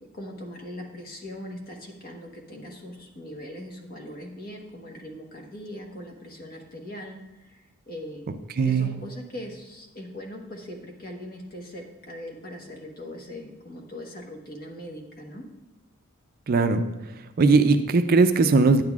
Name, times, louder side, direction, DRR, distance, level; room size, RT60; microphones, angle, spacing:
voice 1, 0.0-8.3 8.6-15.4, left 1 dB, 45° left, 1 dB, 1.2 m, -40 dB
voice 2, 8.6-8.9 16.5-16.8 17.4-18.8, right 4 dB, 45° right, 9 dB, 0.4 m, -19 dB
10.0 x 9.0 x 2.4 m, 1.0 s
head